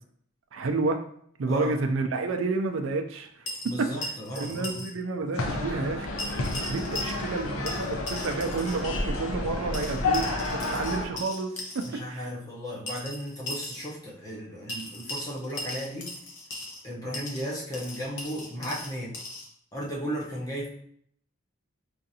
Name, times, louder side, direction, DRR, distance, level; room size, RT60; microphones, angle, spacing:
voice 1, 0.5-1.0 1.4-3.4 3.8-6.1 6.7-12.3, right 3 dB, 70° right, 5 dB, 0.4 m, -30 dB
sound 1, 3.5-4.9 5.2-5.3 6.2-7.4 7.7-8.8 9.7-11.9 12.9-13.9 14.7-16.8 17.1-19.5, left 1 dB, 55° left, 0.8 m, -38 dB
voice 2, 3.6-4.9 11.8-16.1 16.8-19.2 19.7-20.7, equal, 15° left, -5 dB, 0.8 m, -35 dB
sound 2, 5.3-11.1, left 2 dB, 90° left, 0.6 m, -30 dB
4.6 x 2.5 x 2.7 m, 0.66 s
head